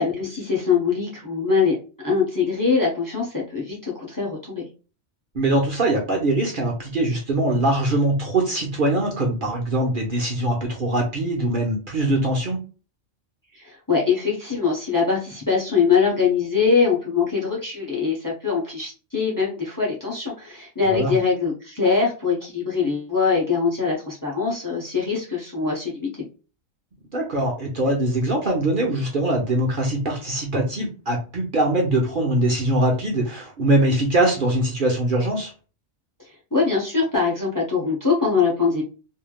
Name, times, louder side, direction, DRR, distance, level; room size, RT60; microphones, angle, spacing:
voice 1, 0.0-1.8 2.0-4.6 13.5-26.1 36.5-38.8, left 5 dB, 20° left, -3 dB, 0.8 m, -22 dB
voice 2, 5.3-12.6 20.8-21.1 27.1-35.5, right 1 dB, 50° right, -1 dB, 0.9 m, -22 dB
3.2 x 2.7 x 2.3 m, 0.34 s
omnidirectional pair, 1.3 m